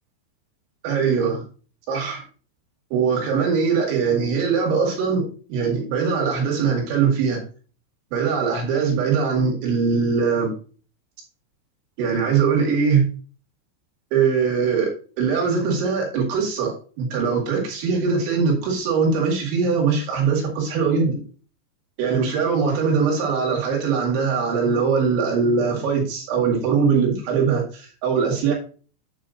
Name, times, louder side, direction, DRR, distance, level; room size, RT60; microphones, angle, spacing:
voice 1, 0.8-1.4 1.9-2.2 2.9-7.4 8.1-10.5 12.0-13.1 14.1-14.9 15.2-21.2 22.0-28.5, right 5 dB, 90° right, -1 dB, 4.6 m, -21 dB
9.1 x 7.9 x 2.5 m, 0.39 s
omnidirectional pair, 5.2 m